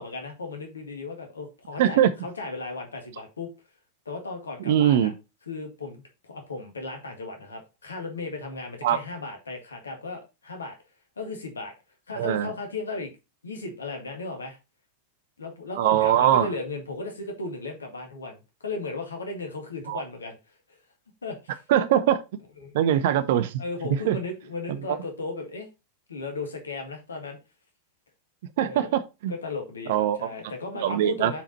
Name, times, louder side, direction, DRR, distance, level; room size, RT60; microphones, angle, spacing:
voice 1, 0.0-3.5 4.1-5.1 5.5-10.8 11.2-11.7 12.1-13.1 13.4-14.6 15.4-20.4 21.2-21.6 22.6-22.7 23.0-23.1 23.6-25.7 26.1-27.4 28.6-28.9 29.3-31.4, left 3 dB, 75° left, 2.0 m, -36 dB
voice 2, 1.8-2.1 4.6-5.1 8.8-9.0 12.2-12.5 15.8-16.5 19.9-20.0 21.7-22.2 22.7-23.6 24.0-24.2 24.7-24.8 28.6-29.3 29.9-30.3 30.8-31.3, right 11 dB, 55° right, 0.8 m, -22 dB
6.9 x 5.1 x 4.2 m
figure-of-eight pair, 90°, 0 cm